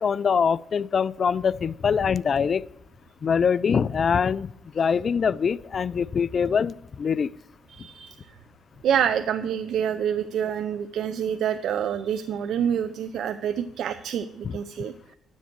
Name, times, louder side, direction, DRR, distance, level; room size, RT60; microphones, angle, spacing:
voice 1, 0.0-2.6 3.2-4.5 4.7-7.3 14.4-14.6, left 6 dB, 45° left, 20 dB, 0.3 m, -23 dB
voice 2, 7.7-8.3 8.8-14.9, right 8 dB, 75° right, 10 dB, 0.4 m, -27 dB
10.0 x 7.3 x 4.5 m, 0.79 s
cardioid pair, 90°, 0 cm